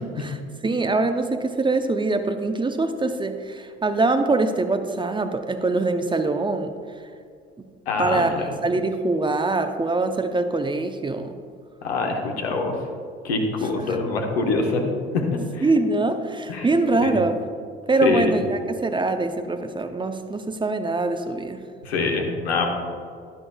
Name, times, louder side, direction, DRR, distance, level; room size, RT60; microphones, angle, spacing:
voice 1, 0.0-6.7 8.0-8.3 8.6-11.3 13.9-14.0 15.6-17.4 17.9-21.6, right 3 dB, 15° right, 8 dB, 0.7 m, -23 dB
voice 2, 7.9-8.5 11.8-12.8 13.2-14.9 15.1-15.7 16.5-16.7 17.0-17.2 18.0-18.3 21.8-22.6, left 3 dB, 80° left, 2 dB, 1.1 m, -24 dB
11.5 x 11.0 x 2.3 m, 2.2 s
figure-of-eight pair, 55°, 32 cm